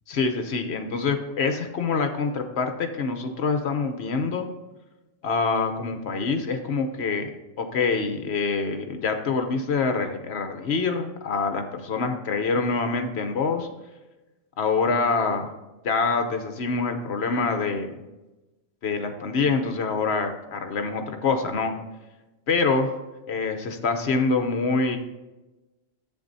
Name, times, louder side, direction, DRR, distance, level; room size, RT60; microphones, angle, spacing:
voice 1, 0.1-4.5 5.2-7.3 7.6-13.7 14.6-15.5 15.8-18.0 18.8-21.8 22.5-23.0 23.3-25.0, left 4 dB, 60° left, 6 dB, 1.0 m, -25 dB
10.5 x 7.9 x 2.7 m, 1.1 s
omnidirectional pair, 1.3 m